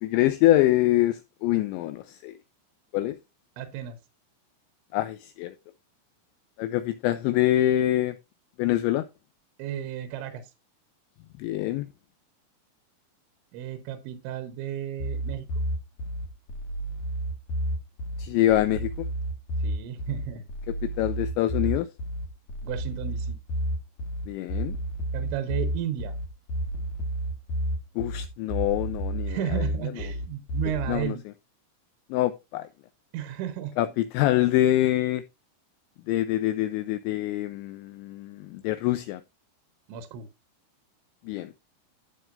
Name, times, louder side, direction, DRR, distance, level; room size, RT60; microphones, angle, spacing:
voice 1, 0.0-2.3 2.9-3.2 4.9-5.5 6.6-8.2 8.6-9.1 11.4-11.9 18.2-19.1 20.8-21.9 24.3-24.8 28.0-29.6 30.9-31.2 32.1-32.7 33.8-35.2 36.1-39.2 41.3-41.5, left 14 dB, 85° left, 2.7 m, -25 dB
voice 2, 3.6-4.0 9.6-10.4 13.5-15.5 19.6-20.4 22.6-23.4 25.1-26.1 29.3-31.2 33.1-33.8 39.9-40.3, right 10 dB, 75° right, 3.2 m, -33 dB
sound 1, 15.0-31.0, right 1 dB, 60° left, 1.9 m, -31 dB
11.5 x 7.6 x 2.5 m
omnidirectional pair, 5.7 m